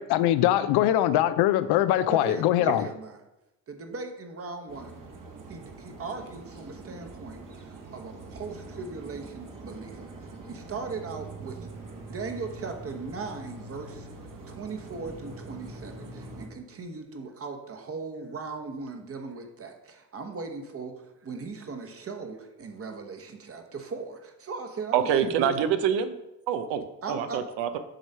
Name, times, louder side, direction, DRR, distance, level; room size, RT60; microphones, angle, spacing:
voice 1, 0.0-2.9, left 13 dB, 75° left, 13 dB, 0.5 m, -22 dB
voice 2, 2.1-3.2 3.7-5.0 5.5-11.6 11.9-14.1 14.5-25.5 27.0-27.4, right 4 dB, 35° right, 5 dB, 1.0 m, -38 dB
sound 1, 4.7-16.5, right 2 dB, 50° right, 1.3 m, -43 dB
voice 3, 24.9-26.2 26.5-27.8, right 8 dB, 90° right, 10 dB, 0.7 m, -26 dB
7.7 x 3.2 x 5.4 m, 0.93 s
cardioid pair, 95°, 40 cm